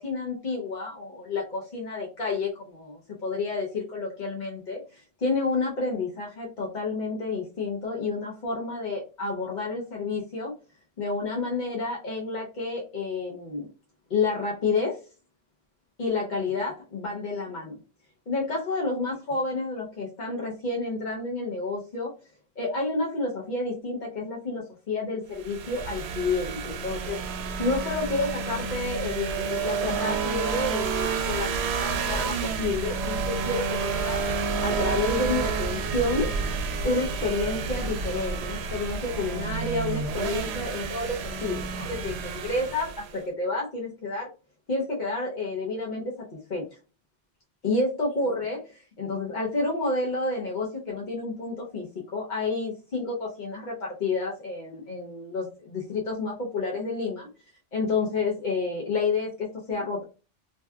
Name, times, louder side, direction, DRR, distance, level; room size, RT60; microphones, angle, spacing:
voice 1, 0.0-10.5 11.0-13.7 14.1-15.0 16.0-17.8 18.3-22.1 22.6-27.2 27.6-34.2 34.6-36.3 36.8-44.3 44.7-46.6 47.6-57.3 57.7-60.0, left 3 dB, 50° left, -3 dB, 0.7 m, -30 dB
sound 1, 25.4-43.2, right 5 dB, 80° right, 0.8 m, -30 dB
2.6 x 2.2 x 3.3 m, 0.33 s
omnidirectional pair, 1.1 m